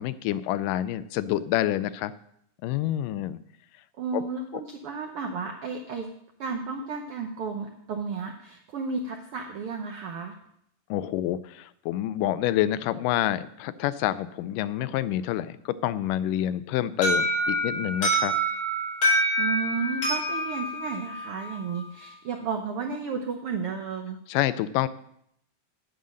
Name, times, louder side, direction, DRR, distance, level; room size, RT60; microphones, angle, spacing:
voice 1, 0.0-2.1 2.6-3.4 4.1-4.2 10.9-18.4 24.3-24.9, left 13 dB, 85° left, 14 dB, 2.2 m, -27 dB
voice 2, 4.0-6.1 6.4-10.3 19.4-24.2, right 5 dB, 80° right, 3 dB, 1.3 m, -33 dB
Alarm, 17.0-21.8, right 1 dB, 40° left, 5.7 m, -26 dB
9.3 x 8.2 x 6.4 m, 0.72 s
omnidirectional pair, 3.7 m